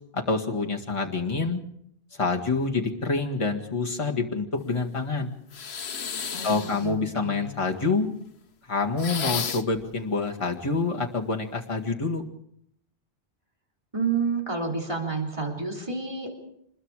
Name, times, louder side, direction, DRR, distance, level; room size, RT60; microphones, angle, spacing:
voice 1, 0.1-1.6 2.2-5.4 6.4-8.1 8.7-12.2, left 3 dB, 30° left, 0 dB, 1.9 m, -27 dB
sound 1, 5.5-6.9 9.0-9.8, left 6 dB, 80° left, 1.3 m, -32 dB
voice 2, 6.3-7.5 13.9-16.3, right 4 dB, 30° right, 0 dB, 3.5 m, -30 dB
26.5 x 21.0 x 4.9 m, 0.72 s
omnidirectional pair, 1.1 m